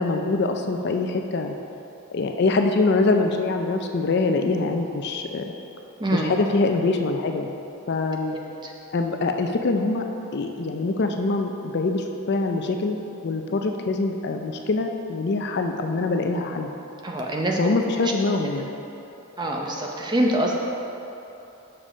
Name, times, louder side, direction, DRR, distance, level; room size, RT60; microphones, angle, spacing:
voice 1, 0.0-1.5 2.1-5.5 6.1-7.5 7.9-8.4 8.9-10.1 10.3-13.0 13.2-16.7 17.6-18.7, left 3 dB, 50° left, 4 dB, 0.4 m, -24 dB
voice 2, 6.0-6.3 8.3-8.7 17.0-17.6 18.0-18.1 18.4-18.5 19.4-20.5, right 1 dB, 20° right, 0 dB, 0.6 m, -25 dB
6.8 x 5.4 x 5.0 m, 3.0 s
head